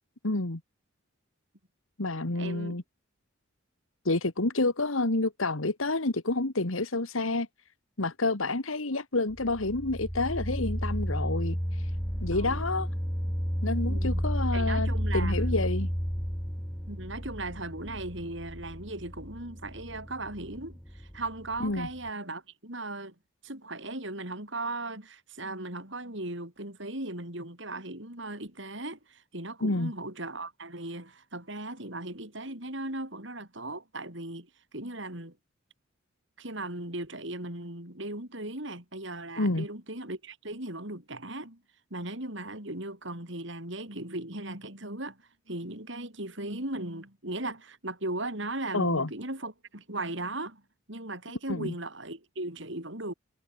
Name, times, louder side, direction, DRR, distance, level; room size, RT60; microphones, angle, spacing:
voice 1, 0.2-0.6 2.0-2.8 4.1-7.5 8.0-11.8 12.2-12.9 13.6-15.9 21.6-21.9 29.6-29.9 39.4-39.7 48.7-49.1 51.5-51.7, left 2 dB, 80° left, 1.9 m, -29 dB
voice 2, 2.3-2.8 12.3-12.6 13.8-14.2 14.5-15.7 16.9-23.1 23.4-35.4 36.4-41.6 41.9-50.6 50.9-53.1, right 2 dB, 60° right, 6.5 m, -37 dB
sound 1, 9.3-22.1, equal, 5° left, 4.1 m, -32 dB
head